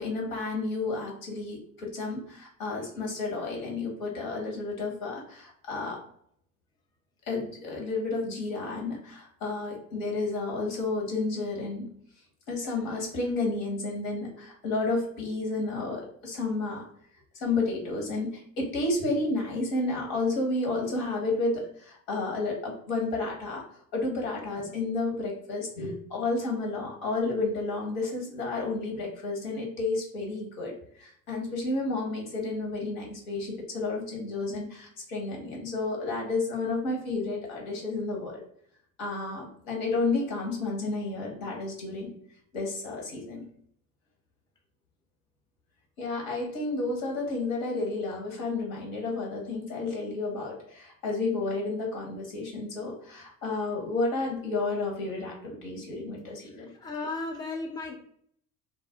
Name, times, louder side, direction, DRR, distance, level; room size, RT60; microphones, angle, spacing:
voice 1, 0.0-6.0 7.2-11.9 12.5-16.9 17.3-23.6 23.9-38.4 39.0-42.2 42.5-43.4 46.0-56.7, left 3 dB, 70° left, 0 dB, 1.3 m, -31 dB
voice 2, 56.4-58.0, left 3 dB, 10° left, 1 dB, 0.6 m, -35 dB
2.5 x 2.1 x 3.5 m, 0.65 s
hypercardioid pair, 65°, 41 cm